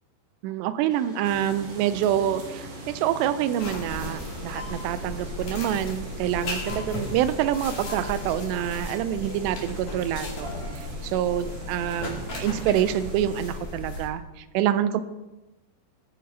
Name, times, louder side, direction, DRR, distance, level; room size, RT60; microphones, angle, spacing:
voice 1, 0.4-10.5 10.8-15.0, right 11 dB, 85° right, 12 dB, 2.8 m, -26 dB
sound 1, 0.9-10.8, equal, ahead, 2.0 m, -48 dB
sound 2, 1.2-13.5, right 3 dB, 70° right, 3.3 m, -42 dB
sound 3, 3.6-14.1, left 2 dB, 50° left, 3.7 m, -35 dB
18.5 x 9.4 x 2.8 m, 1.0 s
omnidirectional pair, 4.9 m